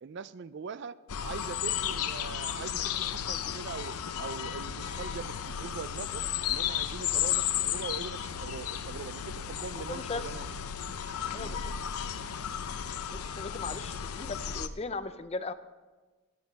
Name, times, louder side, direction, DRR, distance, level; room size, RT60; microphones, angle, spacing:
voice 1, 0.0-10.5 11.3-11.6 12.7-12.8, right 5 dB, 50° right, 16 dB, 0.4 m, -42 dB
sound 1, 1.1-14.7, left 9 dB, 85° left, 0.7 m, -34 dB
voice 2, 9.8-10.3 11.3-11.7 13.1-15.5, left 3 dB, 30° left, 11 dB, 0.5 m, -38 dB
21.5 x 9.4 x 4.0 m, 1.3 s
head